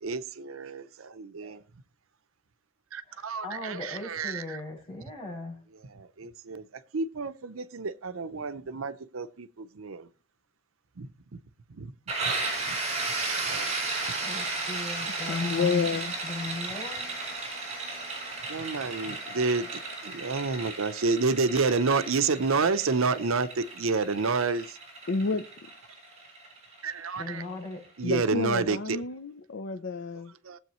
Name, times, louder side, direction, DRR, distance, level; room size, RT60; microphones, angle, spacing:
voice 1, 0.0-1.6 2.9-4.6 5.8-10.1 11.0-11.4 11.7-11.9 12.2-12.3 12.7-12.8 13.5-13.7 18.5-24.8 26.8-27.4 28.0-29.0 30.4-30.6, right 4 dB, 85° right, 0.7 m, -29 dB
voice 2, 3.0-5.6 14.2-15.9 16.2-17.2 27.1-27.8, left 2 dB, 30° left, 5.6 m, -39 dB
sound 1, 12.1-27.7, right 3 dB, 35° right, 6.9 m, -34 dB
voice 3, 15.3-16.2 25.1-25.5 28.0-30.3, left 4 dB, 65° left, 0.6 m, -29 dB
19.5 x 7.9 x 3.1 m
head